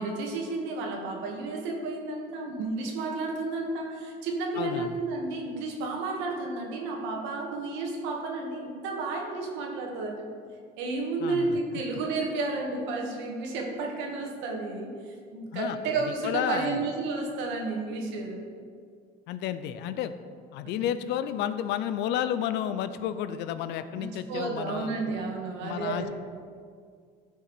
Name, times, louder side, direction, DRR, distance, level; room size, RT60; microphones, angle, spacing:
voice 1, 0.0-10.3 10.8-18.5 20.6-20.8 24.0-26.1, right 3 dB, 85° right, 0 dB, 2.1 m, -32 dB
voice 2, 4.6-5.0 11.2-11.6 15.5-15.8 16.2-16.8 19.3-20.1 20.5-25.3 25.6-26.1, left 10 dB, 70° left, 12 dB, 0.6 m, -31 dB
14.5 x 6.0 x 4.5 m, 2.1 s
cardioid pair, 140°, 19 cm